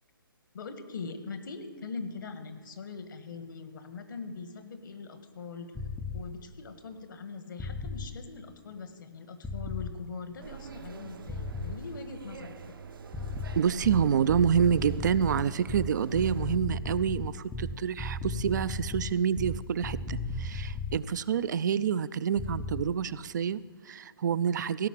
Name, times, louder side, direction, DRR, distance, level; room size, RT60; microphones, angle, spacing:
voice 1, 0.5-5.7 6.1-12.6, left 4 dB, 60° left, 9 dB, 1.4 m, -42 dB
sound 1, 5.7-6.2 7.6-8.1 9.4-10.0 11.3-11.8 13.1-21.0 22.4-22.8, left 2 dB, 5° left, 0.5 m, -35 dB
sound 2, 10.4-16.6, right 6 dB, 65° right, 0.8 m, -45 dB
voice 2, 13.6-24.9, right 7 dB, 50° right, 17 dB, 0.4 m, -28 dB
16.5 x 5.7 x 7.4 m, 1.5 s
figure-of-eight pair, 140°, 12 cm